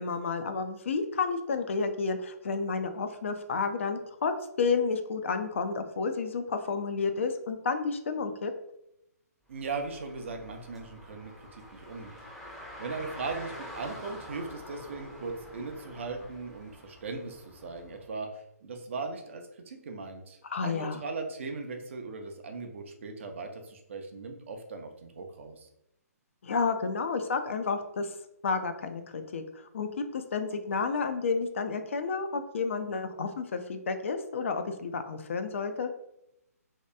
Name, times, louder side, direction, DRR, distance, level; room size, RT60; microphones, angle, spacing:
voice 1, 0.0-4.3 4.6-8.5 20.4-21.0 26.4-28.1 28.4-35.9, left 4 dB, 50° left, 7 dB, 0.4 m, -31 dB
Car, 9.5-18.1, equal, ahead, 0.6 m, -47 dB
voice 2, 9.5-12.2 12.8-25.7, right 4 dB, 50° right, 4 dB, 0.5 m, -39 dB
2.8 x 2.3 x 3.3 m, 0.81 s
figure-of-eight pair, 130°, 9 cm